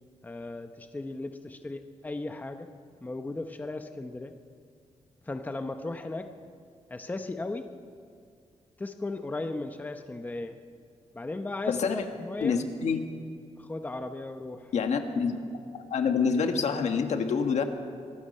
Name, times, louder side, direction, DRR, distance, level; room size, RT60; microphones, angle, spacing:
voice 1, 0.2-2.7 3.0-4.3 5.3-6.3 6.9-7.7 8.8-10.6 11.1-12.6 13.6-14.7, left 2 dB, 15° left, 7 dB, 0.8 m, -36 dB
voice 2, 11.7-12.0 12.4-13.1 14.7-15.4 15.9-17.6, left 5 dB, 80° left, 5 dB, 1.6 m, -27 dB
24.5 x 19.5 x 5.5 m, 2.2 s
wide cardioid pair, 180°, 12 cm